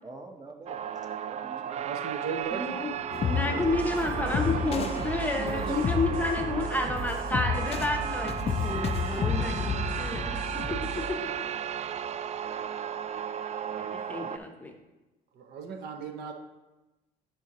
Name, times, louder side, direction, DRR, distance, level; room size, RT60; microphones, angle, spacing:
voice 1, 0.0-1.9 4.2-4.9 10.3-10.4, right 2 dB, 20° right, 4 dB, 1.1 m, -45 dB
sound 1, 0.7-14.4, right 8 dB, 40° right, 0.4 m, -35 dB
voice 2, 1.7-3.0 3.4-3.7 4.5-6.2 15.3-16.3, right 5 dB, 75° right, 5 dB, 0.9 m, -38 dB
voice 3, 2.5-10.8 13.8-14.7, left 2 dB, 10° left, 3 dB, 0.9 m, -31 dB
sound 2, 3.1-11.3, left 8 dB, 35° left, 0.4 m, -33 dB
sound 3, 3.6-11.1, right 1 dB, 60° right, 2.1 m, -37 dB
11.0 x 5.1 x 3.0 m, 1.1 s
cardioid pair, 110°, 17 cm